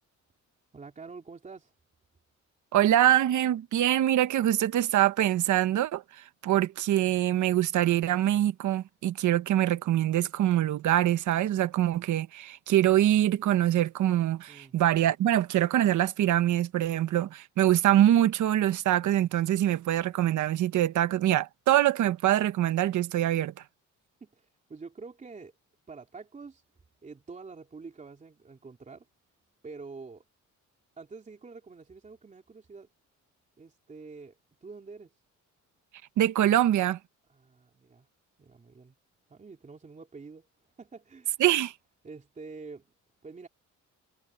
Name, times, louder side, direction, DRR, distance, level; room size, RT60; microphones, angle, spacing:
voice 1, 0.7-1.7 14.5-14.8 24.2-25.5 25.9-26.6 27.0-29.1 29.6-30.2 31.0-32.9 33.6-35.1 37.3-38.1 38.4-38.9 39.3-40.5 40.8-41.4 42.0-42.9 43.2-43.5, right 4 dB, 25° right, 3.3 m, -46 dB
voice 2, 2.7-6.0 6.4-23.5 36.2-37.0 41.4-41.7, right 12 dB, 75° right, 1.1 m, -24 dB
cardioid pair, 155°, 30 cm